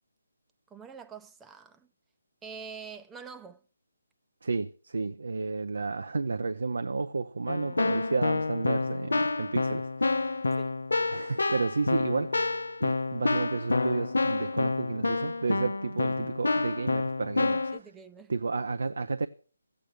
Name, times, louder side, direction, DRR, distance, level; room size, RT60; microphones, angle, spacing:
voice 1, 0.7-1.9 2.4-3.6 7.6-7.8 10.6-10.7 17.7-18.3, right 6 dB, 10° right, 0.6 m, -45 dB
voice 2, 4.4-10.4 11.1-12.4 12.8-17.7 18.3-19.3, right 4 dB, 75° right, 0.6 m, -31 dB
Keyboard (musical), 7.5-17.8, left 3 dB, 85° left, 0.8 m, -28 dB
13.5 x 8.7 x 6.3 m
figure-of-eight pair, 155°, 0 cm